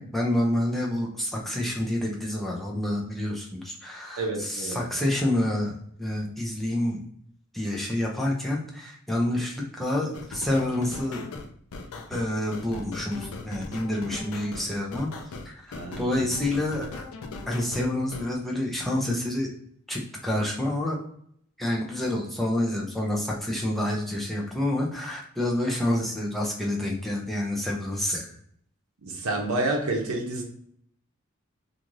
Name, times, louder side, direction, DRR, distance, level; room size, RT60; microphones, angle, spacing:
voice 1, 0.0-7.0 7.5-11.3 12.1-15.1 15.4-17.1 17.5-19.5 19.9-21.0 21.6-28.3, left 1 dB, ahead, -3 dB, 0.5 m, -28 dB
voice 2, 4.2-4.8 15.7-16.1 29.0-30.4, right 2 dB, 80° right, 1 dB, 0.6 m, -29 dB
sound 1, 10.1-18.3, left 3 dB, 75° left, 0.4 m, -39 dB
2.5 x 2.4 x 3.0 m, 0.65 s
head